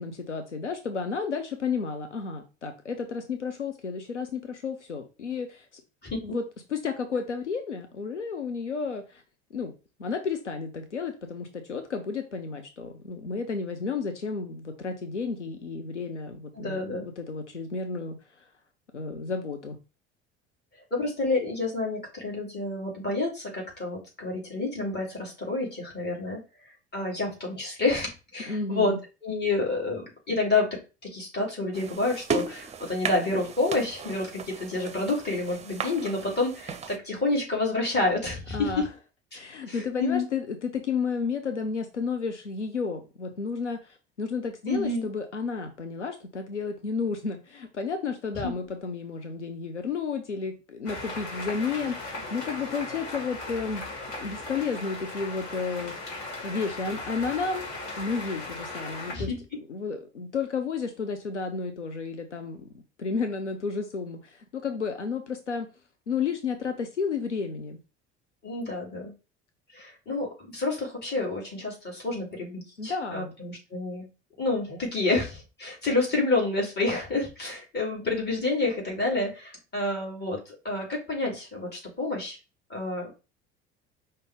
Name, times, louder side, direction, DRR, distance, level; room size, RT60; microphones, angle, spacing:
voice 1, 0.0-5.8 6.2-6.4 6.7-9.2 9.5-9.7 10.0-18.5 18.9-19.8 28.5-29.0 38.5-38.9 39.3-53.9 54.2-57.7 58.0-62.7 63.0-65.7 66.1-67.8 72.8-73.3, left 5 dB, 90° left, 7 dB, 0.5 m, -32 dB
voice 2, 6.0-6.4 16.5-17.0 20.9-26.4 26.9-28.9 29.2-38.8 39.7-40.2 44.7-45.1 59.1-59.4 68.4-69.1 69.7-74.1 74.4-82.4 82.7-83.1, left 3 dB, 30° left, -2 dB, 2.7 m, -29 dB
sound 1, 31.7-37.0, right 5 dB, 20° right, 0.6 m, -35 dB
sound 2, 50.9-59.1, left 2 dB, 60° left, 2.0 m, -37 dB
5.1 x 2.7 x 3.6 m, 0.31 s
figure-of-eight pair, 65°, 34 cm